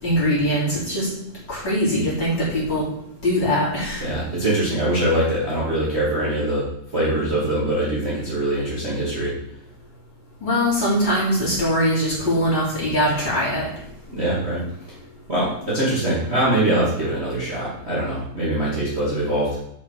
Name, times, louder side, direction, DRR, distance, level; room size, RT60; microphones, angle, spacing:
voice 1, 0.0-1.1 1.5-2.8 3.2-4.0 10.4-13.7, equal, 35° left, -8 dB, 4.4 m, -21 dB
voice 2, 4.0-6.7 6.9-9.3 14.1-15.0 15.3-19.6, right 1 dB, 20° right, -8 dB, 2.4 m, -23 dB
7.2 x 5.6 x 6.6 m, 0.75 s
omnidirectional pair, 3.6 m